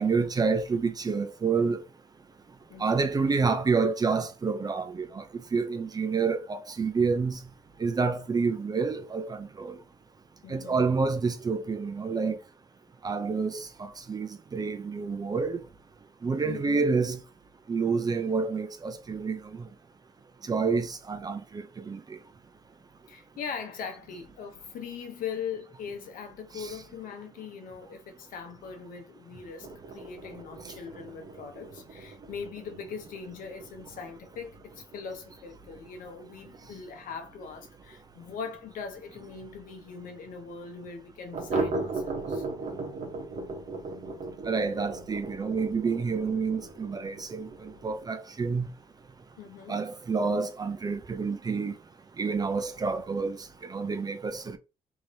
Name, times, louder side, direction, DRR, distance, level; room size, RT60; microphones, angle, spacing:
voice 1, 0.0-1.8 2.8-5.2 5.5-7.4 7.8-9.7 10.5-12.4 13.0-15.6 16.2-17.2 17.7-19.4 20.5-22.0 26.6-26.7 44.5-48.7 49.7-51.7 52.2-53.4 53.7-54.6, right 4 dB, 25° right, 0.4 m, -28 dB
voice 2, 2.7-3.0 10.4-10.8 16.4-16.9 23.1-42.5 49.4-49.8, left 6 dB, 75° left, 0.8 m, -41 dB
sound 1, 29.6-38.8 39.1-39.2 39.6-39.7 40.0-40.1 41.3-48.0, right 3 dB, 55° right, 1.0 m, -38 dB
3.0 x 2.8 x 2.7 m
supercardioid pair, 75°, 15 cm